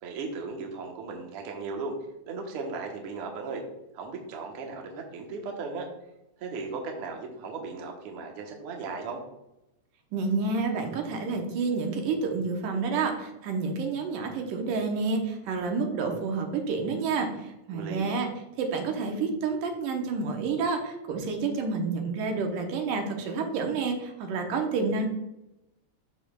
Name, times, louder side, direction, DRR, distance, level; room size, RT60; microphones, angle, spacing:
voice 1, 0.0-1.9 2.3-3.6 3.9-5.9 6.4-9.2 17.7-18.2, right 4 dB, 60° right, 1 dB, 1.7 m, -36 dB
voice 2, 10.1-18.3 18.6-25.1, right 4 dB, 85° right, 3 dB, 2.6 m, -29 dB
13.5 x 4.7 x 2.3 m, 0.89 s
omnidirectional pair, 3.7 m